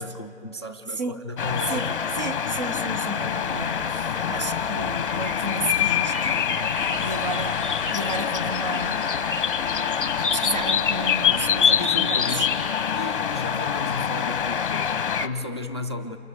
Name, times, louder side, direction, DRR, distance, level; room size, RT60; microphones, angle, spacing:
voice 1, 0.0-2.0 11.2-12.6 12.9-16.2, left 2 dB, 25° left, 7 dB, 0.4 m, -35 dB
sound 1, 1.4-15.3, left 7 dB, 50° left, 0.9 m, -25 dB
voice 2, 1.7-7.6 7.9-9.1 10.3-12.5, right 2 dB, 40° right, 9 dB, 0.6 m, -32 dB
sound 2, 3.4-13.1, right 1 dB, 90° right, 5.9 m, -44 dB
sound 3, 6.8-11.0, left 4 dB, 10° right, 3.9 m, -39 dB
29.0 x 26.5 x 3.6 m, 2.5 s
hypercardioid pair, 170°, 35 cm